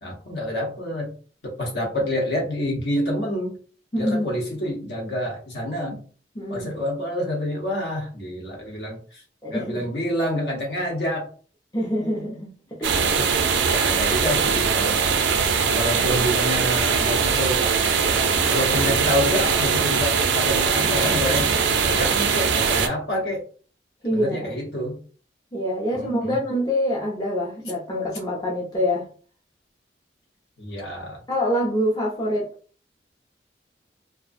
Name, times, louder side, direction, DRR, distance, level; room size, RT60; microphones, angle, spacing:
voice 1, 0.0-1.2 1.4-3.6 4.0-6.0 6.5-9.2 9.5-11.3 12.8-13.3 13.6-15.2 15.7-17.7 18.4-23.4 24.1-25.0 25.9-26.4 30.6-31.2, equal, 70° left, 0.8 m, -28 dB
voice 2, 3.9-4.3 5.9-6.0 6.4-6.7 9.4-9.9 11.7-12.9 24.0-24.5 25.5-29.1 31.3-32.5, equal, 20° left, 0.5 m, -25 dB
sound 1, 12.8-22.9, right 6 dB, 90° right, 0.4 m, -21 dB
2.4 x 2.1 x 2.5 m
head